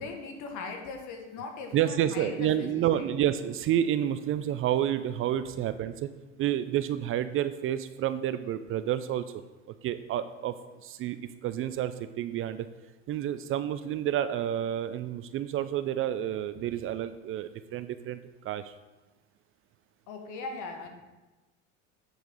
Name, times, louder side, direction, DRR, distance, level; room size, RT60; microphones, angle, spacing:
voice 1, 0.0-3.1 16.6-16.7 20.1-20.9, left 4 dB, 55° left, 3 dB, 1.7 m, -39 dB
voice 2, 1.7-6.1 6.4-9.2 9.8-10.5 10.8-11.2 11.4-12.7 13.1-18.7, right 11 dB, 35° right, 12 dB, 0.4 m, -29 dB
8.0 x 6.9 x 3.9 m, 1.1 s
hypercardioid pair, 80°, 36 cm